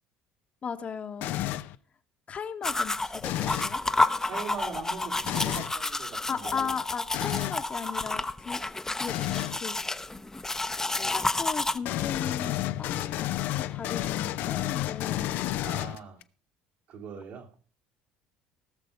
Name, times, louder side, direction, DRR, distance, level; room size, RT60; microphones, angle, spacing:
voice 1, 0.6-1.4 2.3-3.8 6.3-8.6 8.9-9.8 10.9-15.3, left 6 dB, 40° left, 1.2 m, -37 dB
sound 1, 1.2-1.8 3.2-3.8 5.3-5.7 7.1-7.6 9.1-9.6 11.8-16.2, left 14 dB, 65° left, 0.6 m, -31 dB
sound 2, 2.6-11.8, left 2 dB, 15° left, 0.9 m, -30 dB
voice 2, 4.2-6.8 15.6-16.2 16.9-17.5, right 6 dB, 65° right, 2.9 m, -41 dB
17.5 x 6.7 x 5.2 m
hypercardioid pair, 70°, 3 cm